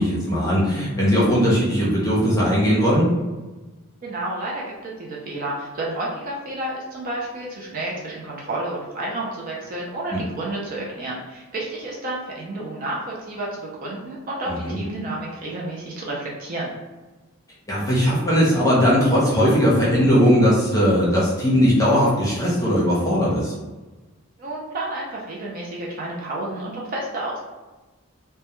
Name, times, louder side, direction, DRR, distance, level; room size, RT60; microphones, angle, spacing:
voice 1, 0.0-3.1 10.1-10.2 14.5-14.8 17.7-23.5, equal, 15° left, -7 dB, 0.7 m, -19 dB
voice 2, 4.0-16.7 24.4-27.4, right 1 dB, 40° right, -4 dB, 0.4 m, -30 dB
2.2 x 2.1 x 2.9 m, 1.2 s
head